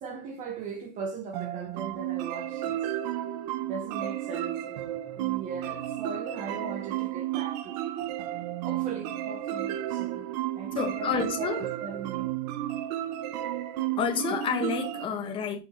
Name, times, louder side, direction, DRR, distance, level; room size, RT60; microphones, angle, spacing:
voice 1, 0.0-2.8 3.6-8.1 8.6-10.3 10.5-12.3, right 5 dB, 25° right, 0.9 m, -39 dB
sound 1, 1.3-15.0, right 13 dB, 40° right, 0.5 m, -33 dB
voice 2, 10.7-11.6 14.0-15.6, left 6 dB, 15° left, 0.9 m, -29 dB
7.2 x 6.4 x 3.0 m
supercardioid pair, 180°, 32 cm